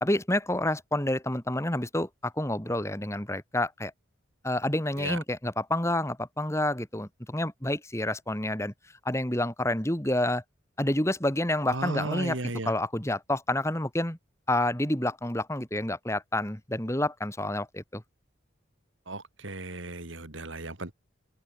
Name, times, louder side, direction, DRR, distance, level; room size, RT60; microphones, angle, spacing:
voice 1, 0.0-3.9 4.4-8.7 9.0-10.4 10.8-12.4 12.6-14.2 14.5-18.0, left 1 dB, 15° left, 2.5 m, -28 dB
voice 2, 11.7-12.7 19.1-20.9, right 2 dB, 70° right, 2.7 m, -35 dB
head